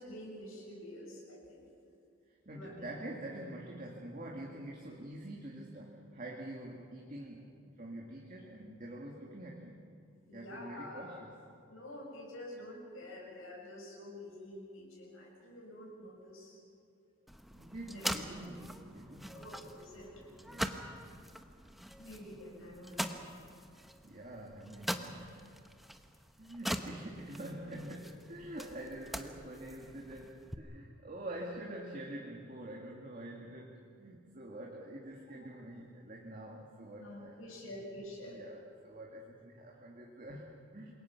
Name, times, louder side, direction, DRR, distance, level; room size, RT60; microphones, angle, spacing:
voice 1, 0.0-1.7 2.5-2.8 10.3-11.2 11.7-16.6 17.9-18.1 19.3-20.1 22.0-23.2 37.0-38.4, left 1 dB, 80° left, -3 dB, 7.2 m, -48 dB
voice 2, 2.3-9.8 10.3-11.3 17.5-19.6 20.4-20.8 23.4-25.5 26.4-37.7 38.3-40.9, right 1 dB, 40° right, -2 dB, 2.2 m, -46 dB
sound 1, 17.3-30.5, equal, ahead, 0.9 m, -43 dB
27.0 x 22.0 x 5.9 m, 2.4 s
head